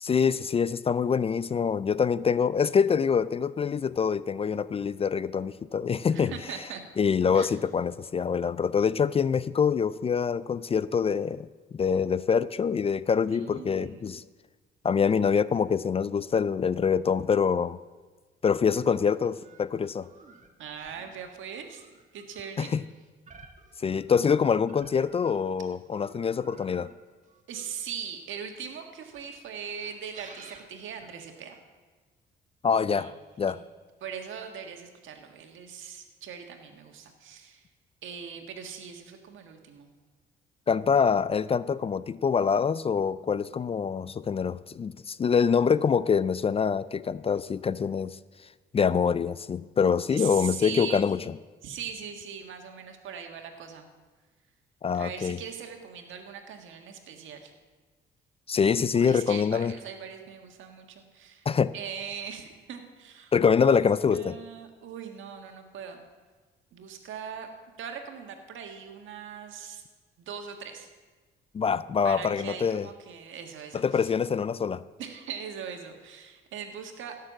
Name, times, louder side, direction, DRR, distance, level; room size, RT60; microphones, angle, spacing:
voice 1, 0.0-6.3 7.0-11.5 11.7-14.2 14.8-17.8 18.4-20.1 22.6-22.8 23.8-26.9 32.6-33.6 40.7-48.2 48.7-51.2 54.8-55.4 58.5-59.7 61.5-61.7 63.3-64.4 71.5-72.9 73.7-74.8, left 6 dB, 30° left, 17 dB, 0.3 m, -25 dB
voice 2, 6.1-6.8 7.3-7.5 13.3-14.1 20.6-21.8 22.1-22.7 27.5-31.6 32.9-33.1 33.5-33.6 34.0-37.7 38.0-39.9 50.1-51.0 51.6-53.9 54.9-57.5 58.9-61.5 61.7-63.3 63.6-63.8 64.1-66.0 66.7-67.5 67.8-69.8 70.2-70.9 72.0-74.1 75.0-77.2, right 7 dB, 80° right, 5 dB, 1.6 m, -40 dB
sound 1, 18.7-25.5 25.9-28.3 29.0-31.6, right 4 dB, 40° right, 1.7 m, -53 dB
16.0 x 6.6 x 7.3 m, 1.4 s
cardioid pair, 90°, 20 cm